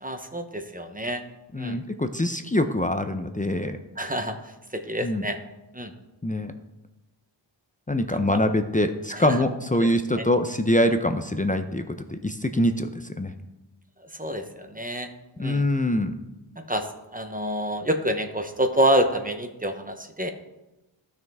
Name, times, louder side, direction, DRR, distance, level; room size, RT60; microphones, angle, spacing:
voice 1, 0.0-1.2 1.6-1.8 4.0-5.4 5.7-5.9 8.1-8.4 9.1-9.4 9.7-9.9 10.1-10.2 14.0-15.1 15.4-15.6 16.6-20.3, right 1 dB, 20° right, 6 dB, 0.9 m, -28 dB
voice 2, 1.5-3.8 5.0-5.2 6.2-6.5 7.9-11.8 12.1-13.3 15.4-16.1, left 1 dB, 15° left, 7 dB, 0.5 m, -24 dB
14.0 x 6.4 x 3.5 m, 0.99 s
wide cardioid pair, 85°, 47 cm